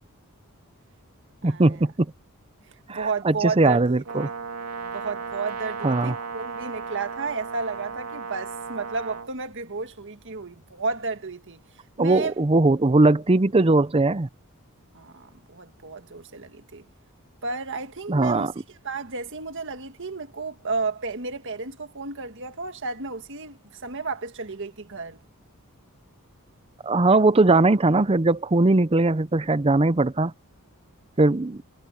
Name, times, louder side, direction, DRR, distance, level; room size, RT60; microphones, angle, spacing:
voice 1, 1.4-2.1 2.9-4.3 5.8-6.2 12.0-14.3 18.1-18.5 26.8-30.3 31.2-31.6, right 2 dB, 25° right, 0.6 m, -20 dB
voice 2, 2.9-4.0 4.8-11.6 12.0-12.3 14.9-16.8 17.4-18.5 18.8-25.2, right 4 dB, 55° right, 1.8 m, -32 dB
Brass instrument, 4.0-9.3, right 5 dB, 80° right, 3.1 m, -35 dB
head